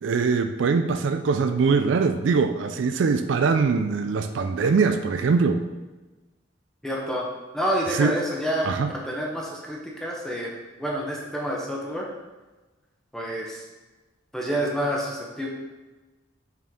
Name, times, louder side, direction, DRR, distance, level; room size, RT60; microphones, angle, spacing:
voice 1, 0.0-5.6 7.9-8.2 8.6-8.9, right 4 dB, 80° right, 8 dB, 0.4 m, -22 dB
voice 2, 6.8-7.3 7.5-8.7 9.1-12.1 13.1-13.6 14.3-15.5, equal, 5° left, -3 dB, 0.8 m, -28 dB
6.0 x 4.4 x 3.6 m, 1.2 s
head